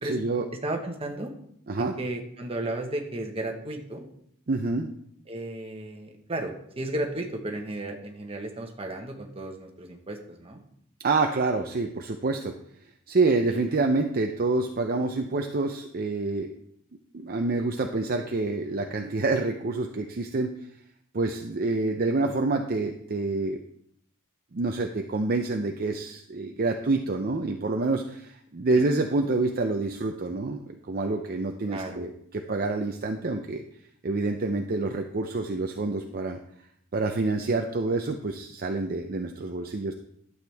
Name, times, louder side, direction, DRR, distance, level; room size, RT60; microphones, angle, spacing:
voice 1, 0.0-0.4 1.7-1.9 4.5-4.9 11.0-12.5 13.1-16.5 17.1-20.5 21.1-23.6 24.5-33.6 34.0-36.4 36.9-39.9, right 3 dB, 45° right, 4 dB, 0.6 m, -27 dB
voice 2, 0.6-1.3 1.8-4.0 5.3-10.6 13.5-13.6 28.7-28.8 31.7-32.0, right 1 dB, 25° right, 3 dB, 1.3 m, -34 dB
12.0 x 8.0 x 3.5 m, 0.70 s
head